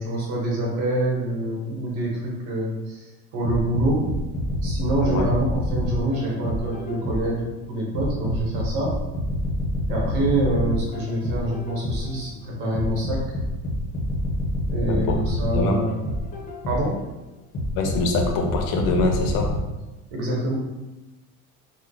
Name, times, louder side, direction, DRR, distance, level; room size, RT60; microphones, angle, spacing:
voice 1, 0.0-3.0 3.3-4.1 4.6-7.4 7.7-9.0 9.9-13.2 14.7-15.9 16.7-17.0 20.1-20.5, right 1 dB, 85° right, -3 dB, 1.0 m, -26 dB
sound 1, 3.4-7.4 7.9-12.2 12.7-17.0 17.5-19.6, equal, 25° left, 0.6 m, -27 dB
voice 2, 17.8-19.5, left 3 dB, 80° left, 2 dB, 0.7 m, -23 dB
3.2 x 2.0 x 3.7 m, 1.1 s
cardioid pair, 170°, 33 cm